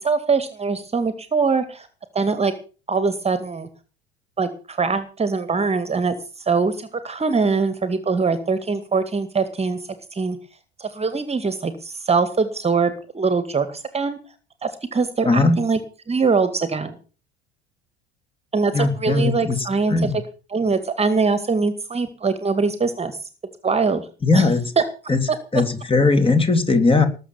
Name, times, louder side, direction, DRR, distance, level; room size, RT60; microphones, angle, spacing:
voice 1, 0.0-1.9 2.1-2.5 2.9-3.7 4.4-9.8 10.1-10.4 10.8-14.2 14.6-15.8 16.1-17.0 18.5-20.1 20.5-23.2 23.6-24.1 24.3-24.5 24.8-24.9, right 4 dB, 20° right, 12 dB, 2.1 m, -22 dB
voice 2, 15.2-15.6 18.7-19.6 19.9-20.2 24.2-24.6 25.1-25.2 25.5-27.1, left 3 dB, 15° left, 9 dB, 3.3 m, -18 dB
19.5 x 7.5 x 7.3 m, 0.35 s
figure-of-eight pair, 65°, 31 cm